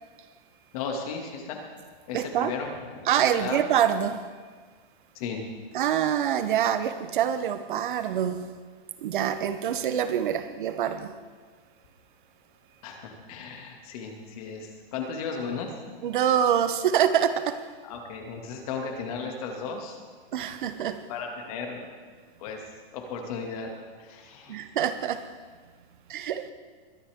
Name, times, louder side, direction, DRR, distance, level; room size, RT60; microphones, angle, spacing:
voice 1, 0.7-1.6 2.1-2.7 2.9-3.6 5.1-5.4 12.8-15.7 17.8-20.0 21.1-21.9 22.4-22.6 22.9-23.7 24.0-24.7, left 5 dB, 35° left, 2 dB, 2.1 m, -35 dB
voice 2, 2.1-2.5 3.1-4.2 5.7-8.5 9.0-11.2 16.0-17.7 20.3-21.0 24.5-25.3 26.1-26.5, right 9 dB, 55° right, 11 dB, 0.8 m, -25 dB
22.0 x 11.5 x 3.6 m, 1.5 s
supercardioid pair, 170°, 30 cm